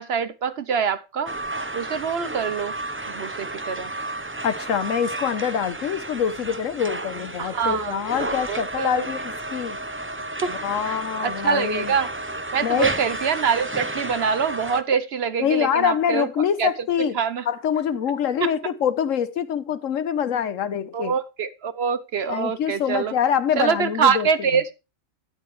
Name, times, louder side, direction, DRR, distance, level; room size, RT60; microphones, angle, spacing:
voice 1, 0.0-1.3 1.7-2.7 3.1-3.9 7.4-9.1 10.4-10.5 10.8-12.1 12.5-16.7 17.1-17.4 18.4-18.5 20.9-23.1 23.5-24.7, right 6 dB, 55° right, 0.9 m, -25 dB
sound 1, 1.3-14.8, right 2 dB, 15° right, 0.5 m, -32 dB
voice 2, 4.4-9.8 10.5-11.9 12.6-12.9 15.4-17.1 17.5-21.1 22.3-24.3, left 8 dB, 75° left, 1.2 m, -25 dB
12.5 x 9.7 x 3.2 m
omnidirectional pair, 1.4 m